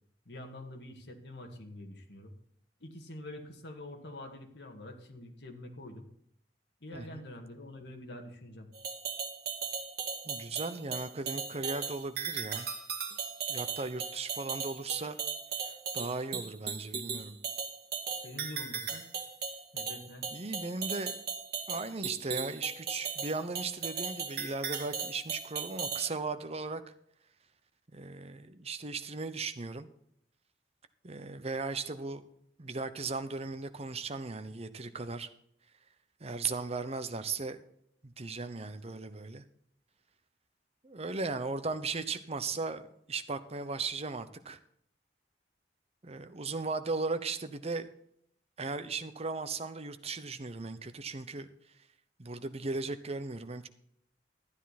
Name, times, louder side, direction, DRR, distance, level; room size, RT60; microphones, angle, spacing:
voice 1, 0.3-2.3 2.8-6.1 6.8-8.7 18.2-19.1 19.7-20.3, left 1 dB, 70° left, 3 dB, 2.0 m, -46 dB
voice 2, 6.9-7.2 10.2-12.7 13.5-15.2 15.9-17.4 20.3-21.2 21.7-26.8 27.9-29.9 31.0-32.2 32.6-35.3 36.2-37.6 38.0-39.4 40.8-44.6 46.0-47.9 48.6-51.5 52.2-53.7, right 3 dB, 35° right, 11 dB, 0.9 m, -37 dB
sound 1, 8.7-26.1, right 6 dB, 60° right, 2.0 m, -37 dB
13.0 x 10.0 x 4.3 m, 0.70 s
head